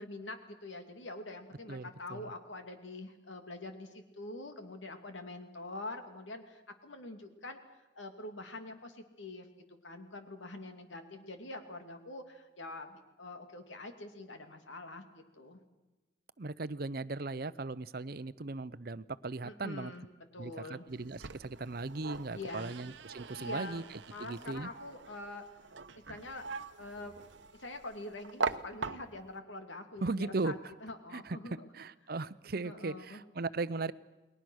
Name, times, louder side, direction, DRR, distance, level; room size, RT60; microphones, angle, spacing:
voice 1, 0.0-7.6 8.0-9.5 9.8-15.6 19.4-20.1 20.3-20.9 22.3-22.7 23.3-23.8 24.1-25.4 26.1-26.4 26.8-27.1 27.5-31.6 32.6-33.2, left 2 dB, 80° left, 6 dB, 2.7 m, -45 dB
voice 2, 1.7-2.3 16.4-19.9 20.4-23.8 24.2-24.7 30.0-30.5 31.1-31.4 31.7-33.9, right 3 dB, 50° right, 15 dB, 0.7 m, -38 dB
sound 1, 20.9-29.4, right 4 dB, 75° right, 1.0 m, -42 dB
29.5 x 21.0 x 6.4 m, 1.1 s
head